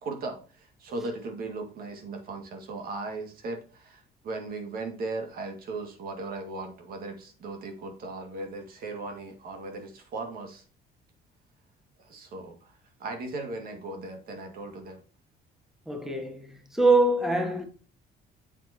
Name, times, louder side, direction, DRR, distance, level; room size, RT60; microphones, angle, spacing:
voice 1, 0.0-10.6 12.0-15.0, right 3 dB, 60° right, 2.0 m, -37 dB
voice 2, 15.9-17.6, right 2 dB, ahead, 1.4 m, -24 dB
7.7 x 7.3 x 2.8 m
cardioid pair, 110°, 17 cm